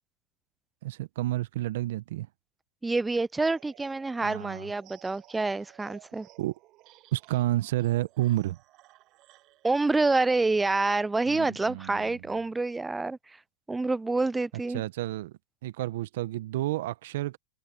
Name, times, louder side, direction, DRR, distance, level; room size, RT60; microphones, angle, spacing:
voice 1, 0.8-2.3 4.2-4.7 6.4-6.5 7.1-8.6 11.3-12.1 14.7-15.3 15.6-17.4, right 15 dB, 65° right, 1.0 m, -30 dB
voice 2, 2.8-6.3 9.6-13.4 13.7-14.8, right 3 dB, 10° right, 0.3 m, -27 dB
sound 1, 3.4-10.0, right 18 dB, 45° right, 7.2 m, -56 dB
hypercardioid pair, 110°, 0 cm